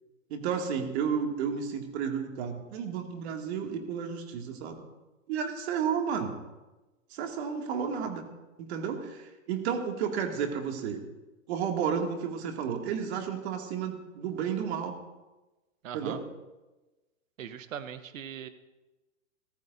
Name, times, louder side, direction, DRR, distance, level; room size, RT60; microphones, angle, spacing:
voice 1, 0.3-4.8 5.3-6.3 7.1-8.2 8.6-11.0 11.5-14.9 15.9-16.2, right 7 dB, 55° right, 3 dB, 2.5 m, -32 dB
voice 2, 15.8-16.2 17.4-18.5, right 8 dB, 75° right, 11 dB, 1.1 m, -40 dB
24.0 x 14.5 x 2.7 m, 1.1 s
hypercardioid pair, 130°, 39 cm